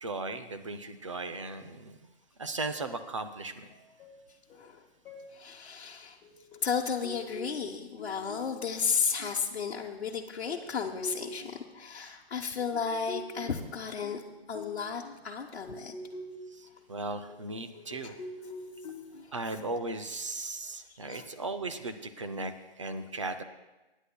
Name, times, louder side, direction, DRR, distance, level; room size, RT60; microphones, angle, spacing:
voice 1, 0.0-2.0 2.4-3.7 16.5-18.1 19.3-23.4, right 3 dB, 30° right, 8 dB, 0.5 m, -37 dB
sound 1, 3.7-4.2 4.5-4.7 5.0-5.3 6.2-9.6 10.3-11.7 12.6-16.6 17.3-20.0, left 1 dB, 10° left, 1.0 m, -45 dB
voice 2, 5.3-6.2 6.6-14.2 14.5-15.9 18.0-18.2 21.0-21.3, left 6 dB, 70° left, -2 dB, 1.0 m, -33 dB
21.5 x 9.9 x 2.2 m, 1.1 s
hypercardioid pair, 165°, 32 cm